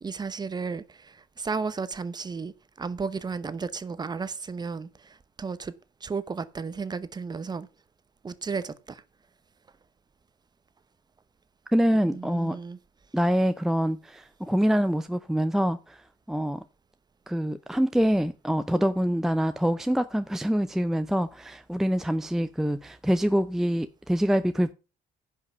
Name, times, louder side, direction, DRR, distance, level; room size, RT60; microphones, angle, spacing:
voice 1, 0.0-5.7 6.0-7.7 8.2-9.0 12.0-12.8, right 5 dB, 25° right, 1.0 m, -34 dB
voice 2, 11.7-12.6 13.1-16.0 16.3-16.6 17.3-24.7, equal, ahead, 0.5 m, -25 dB
10.5 x 5.7 x 6.6 m
cardioid pair, 110°, 17 cm